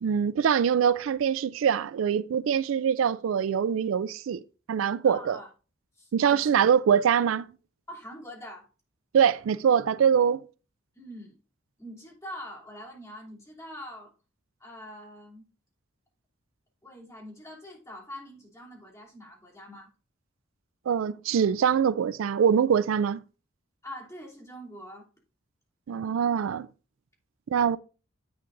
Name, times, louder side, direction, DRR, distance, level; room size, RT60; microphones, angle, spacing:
voice 1, 0.0-4.4 4.7-5.4 6.1-7.5 9.1-10.4 20.9-23.2 25.9-26.7 27.5-27.8, right 7 dB, 75° right, 0.3 m, -23 dB
voice 2, 5.0-5.5 6.0-6.5 7.9-8.7 10.9-11.4 11.8-14.1 14.6-15.5 16.8-19.9 23.8-25.1, equal, 15° left, 3.0 m, -44 dB
10.5 x 8.4 x 2.6 m
head